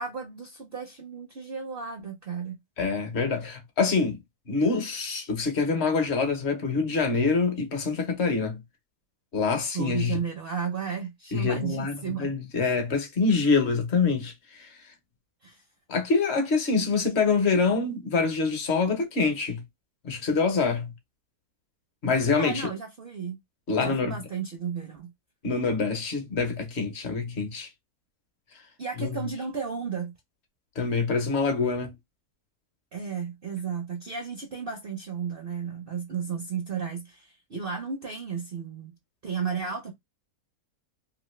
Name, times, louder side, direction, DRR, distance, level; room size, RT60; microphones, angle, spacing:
voice 1, 0.0-2.6 9.7-12.3 15.4-15.6 22.4-23.4 23.8-25.1 28.8-30.1 32.9-38.9 39.2-39.9, right 6 dB, 55° right, 0.6 m, -33 dB
voice 2, 2.8-4.2 4.5-8.6 9.3-10.2 11.3-14.7 15.9-19.6 20.0-20.9 22.0-22.7 23.7-24.2 25.4-27.7 29.0-29.2 30.8-31.9, left 4 dB, 50° left, 1.0 m, -25 dB
3.0 x 2.5 x 3.1 m
omnidirectional pair, 1.6 m